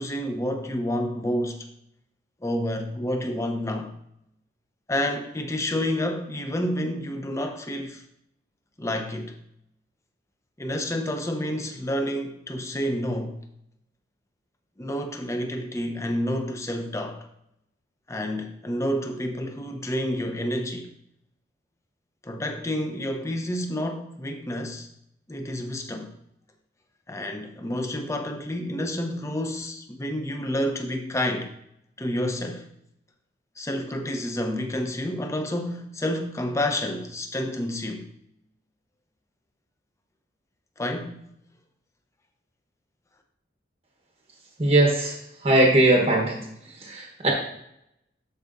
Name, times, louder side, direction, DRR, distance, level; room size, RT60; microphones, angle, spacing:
voice 1, 0.0-1.7 2.4-3.9 4.9-8.0 8.8-9.4 10.6-13.4 14.8-17.3 18.1-20.9 22.2-24.9 25.3-26.1 27.1-31.5 32.0-32.7 33.6-38.1 40.8-41.3, left 1 dB, 15° left, 0.7 m, -29 dB
voice 2, 44.6-45.2 45.4-46.4 46.8-47.3, right 1 dB, 35° right, 1.0 m, -20 dB
12.5 x 4.9 x 2.6 m
head